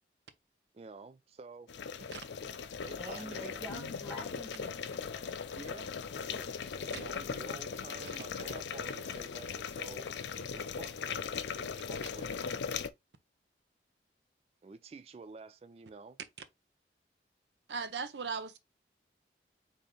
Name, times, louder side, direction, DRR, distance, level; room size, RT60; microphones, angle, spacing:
voice 1, 0.7-1.7 2.8-3.8 5.5-5.9 6.2-10.1 10.5-12.5 14.6-16.2, right 4 dB, 35° right, 0.3 m, -50 dB
sound 1, 1.7-12.9, left 6 dB, 85° left, 0.5 m, -39 dB
voice 2, 3.0-5.0, equal, 5° right, 1.9 m, -45 dB
voice 3, 17.7-18.6, right 5 dB, 85° right, 0.7 m, -37 dB
4.2 x 3.5 x 3.1 m
head